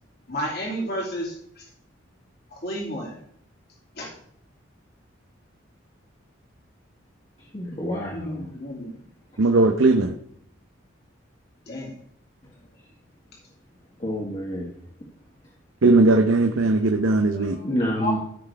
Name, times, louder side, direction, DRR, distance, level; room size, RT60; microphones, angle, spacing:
voice 1, 0.3-1.6 2.5-3.2 4.0-4.1 8.1-8.9 11.7-11.9 17.8-18.2, equal, 50° left, -2 dB, 2.8 m, -31 dB
voice 2, 7.5-8.5 14.0-14.7 17.3-18.2, equal, 35° left, -5 dB, 1.9 m, -28 dB
voice 3, 9.4-10.1 15.8-17.6, right 2 dB, 90° right, 5 dB, 0.8 m, -18 dB
15.0 x 6.0 x 3.5 m, 0.67 s
head